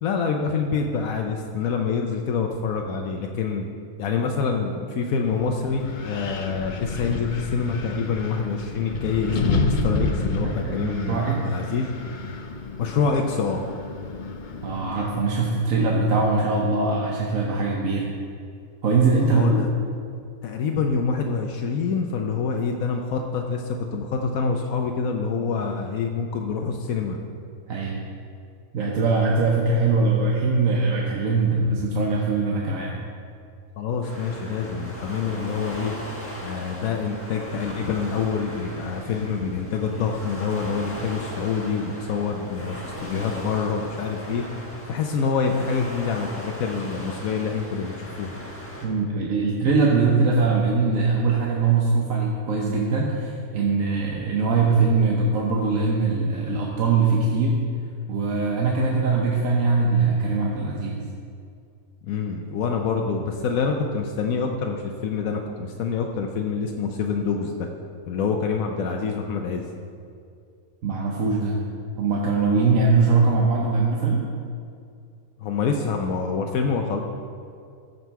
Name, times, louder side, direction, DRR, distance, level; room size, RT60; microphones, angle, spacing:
voice 1, 0.0-3.7 4.0-11.9 12.8-13.6 19.2-19.7 20.4-27.2 33.8-35.9 36.4-44.4 44.9-48.3 62.0-67.7 68.1-69.6 75.4-77.0, left 5 dB, 80° left, 2 dB, 1.1 m, -26 dB
Wind, 5.2-15.2, left 3 dB, 50° left, 0.6 m, -30 dB
voice 2, 10.4-11.5 14.6-18.1 18.8-19.6 27.7-28.0 28.7-33.0 48.8-57.6 58.1-61.0 70.8-71.6 72.0-74.3, right 4 dB, 70° right, -2 dB, 1.3 m, -22 dB
Waves surf, 34.0-48.9, equal, 10° left, 1.3 m, -38 dB
14.0 x 5.5 x 4.6 m, 2.3 s
omnidirectional pair, 1.5 m